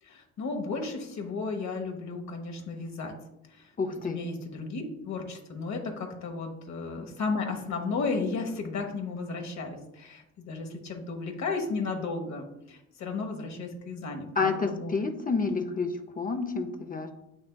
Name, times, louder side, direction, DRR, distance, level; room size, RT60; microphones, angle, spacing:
voice 1, 0.0-3.1 3.5-3.7 4.0-14.9, left 4 dB, 65° left, 3 dB, 1.2 m, -34 dB
voice 2, 3.8-4.2 14.4-17.1, left 4 dB, 30° left, 6 dB, 0.6 m, -29 dB
7.6 x 6.1 x 2.3 m, 0.86 s
cardioid pair, 90°, 30 cm